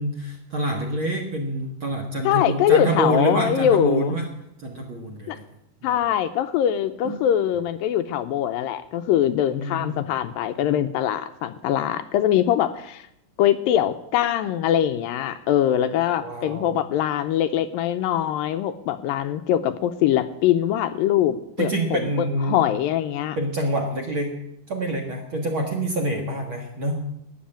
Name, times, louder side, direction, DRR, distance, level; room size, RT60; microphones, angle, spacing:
voice 1, 0.0-4.3 4.6-5.4 5.8-5.9 7.0-7.1 9.5-10.1 16.2-16.8 21.6-22.6 23.4-24.4 24.7-27.2, right 1 dB, 45° right, 1 dB, 1.8 m, -27 dB
voice 2, 2.2-4.2 5.3-5.4 5.8-13.0 13.4-22.1 22.5-23.4, left 10 dB, 80° left, 10 dB, 2.3 m, -22 dB
13.0 x 9.3 x 8.8 m, 0.78 s
omnidirectional pair, 4.3 m